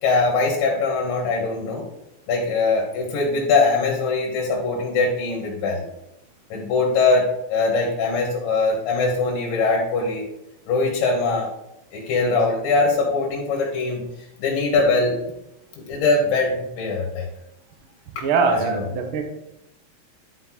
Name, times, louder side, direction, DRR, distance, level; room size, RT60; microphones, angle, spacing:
voice 1, 0.0-1.8 2.3-5.9 6.5-10.3 10.7-11.5 11.9-14.0 14.4-15.2 15.9-17.3 18.2-18.3 18.6-18.8, left 3 dB, 80° left, -2 dB, 3.2 m, -22 dB
voice 2, 18.2-19.2, right 5 dB, 70° right, 4 dB, 1.2 m, -22 dB
10.5 x 5.2 x 4.0 m, 0.84 s
omnidirectional pair, 4.0 m